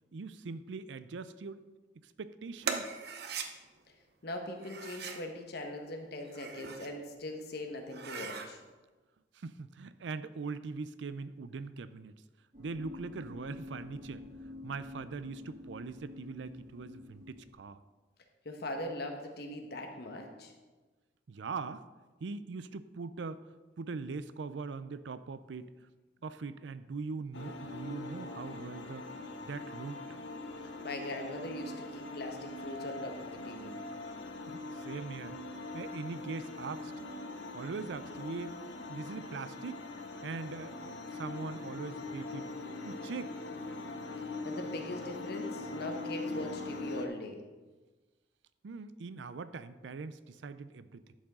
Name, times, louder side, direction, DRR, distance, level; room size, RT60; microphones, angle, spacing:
voice 1, 0.1-1.6 2.0-3.0 6.6-6.8 9.3-12.2 12.6-14.2 14.6-17.8 21.3-21.9 22.2-23.5 23.8-25.8 26.2-29.1 29.4-30.0 34.5-35.4 35.7-36.9 37.5-38.6 38.9-39.9 40.2-42.5 42.8-43.4 48.6-51.0, right 4 dB, 85° right, 14 dB, 0.5 m, -41 dB
sound 1, 2.6-3.5 4.6-5.3 6.2-6.9 7.4-7.5 7.8-8.5, right 6 dB, 65° right, 0.8 m, -39 dB
voice 2, 4.2-8.6 18.4-20.5 30.8-33.7 44.4-47.4, left 1 dB, 65° left, 3 dB, 1.3 m, -41 dB
sound 2, 12.5-17.5, left 2 dB, 45° right, 2.1 m, -48 dB
sound 3, 27.3-47.1, left 2 dB, 85° left, 0.8 m, -42 dB
11.5 x 7.1 x 3.7 m, 1.2 s
head